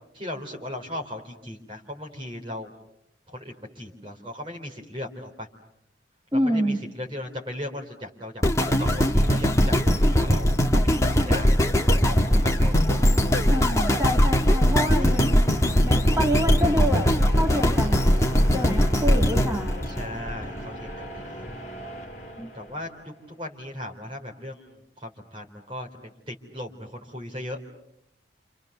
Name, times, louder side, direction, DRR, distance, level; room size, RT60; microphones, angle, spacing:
voice 1, 0.1-2.7 3.3-5.5 6.3-8.4 8.8-12.8 13.3-13.7 15.0-15.1 19.9-21.4 22.5-27.6, left 1 dB, 30° right, 1 dB, 3.9 m, -38 dB
voice 2, 6.3-6.8 13.5-15.3 15.8-18.1 18.5-19.9 22.4-22.5, equal, 15° right, 0 dB, 1.8 m, -27 dB
sound 1, 8.4-20.6 21.2-21.3, equal, 15° left, 1.5 m, -20 dB
sound 2, 10.4-23.2, equal, 40° left, 2.5 m, -40 dB
29.5 x 27.5 x 6.8 m, 0.77 s
head